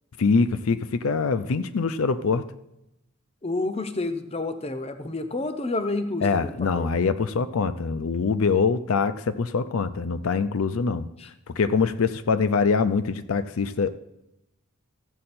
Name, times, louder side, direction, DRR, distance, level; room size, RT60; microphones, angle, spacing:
voice 1, 0.2-2.4 6.2-11.1 11.6-14.0, left 5 dB, 70° left, 11 dB, 0.5 m, -24 dB
voice 2, 3.4-6.9 11.2-11.3, left 2 dB, 25° left, 9 dB, 0.7 m, -29 dB
14.5 x 7.6 x 4.3 m, 0.86 s
head